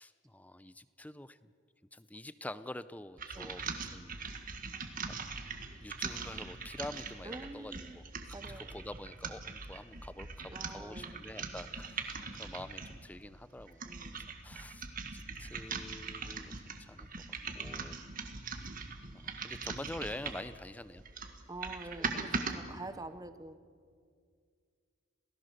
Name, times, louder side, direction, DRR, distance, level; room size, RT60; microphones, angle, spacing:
voice 1, 0.0-1.5 1.9-4.1 5.8-13.8 14.1-17.1 17.5-18.0 19.1-21.0, left 1 dB, 10° left, 14 dB, 0.5 m, -46 dB
sound 1, 3.2-13.0 13.6-20.5 21.0-22.6, right 4 dB, 45° right, 1.7 m, -41 dB
voice 2, 7.2-8.0 8.3-8.8 10.5-11.3 13.9-14.3 18.0-18.2 19.0-19.2 21.5-23.6, right 2 dB, 20° right, 12 dB, 0.8 m, -47 dB
27.5 x 18.0 x 6.6 m, 2.2 s
head